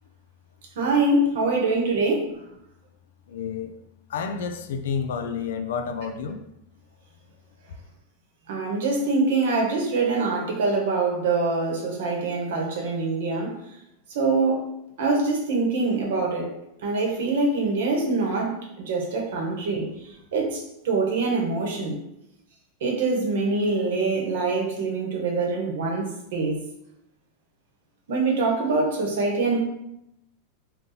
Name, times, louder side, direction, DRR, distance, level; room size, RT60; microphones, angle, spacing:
voice 1, 0.8-2.3 8.5-13.5 14.1-14.6 15.0-16.5 16.8-19.9 20.3-22.0 22.8-26.6 28.1-29.6, right 3 dB, 75° right, 0 dB, 0.9 m, -24 dB
voice 2, 3.3-3.7 4.1-6.4, left 6 dB, 80° left, 6 dB, 0.4 m, -30 dB
2.6 x 2.2 x 3.9 m, 0.83 s
supercardioid pair, 125°, 0 cm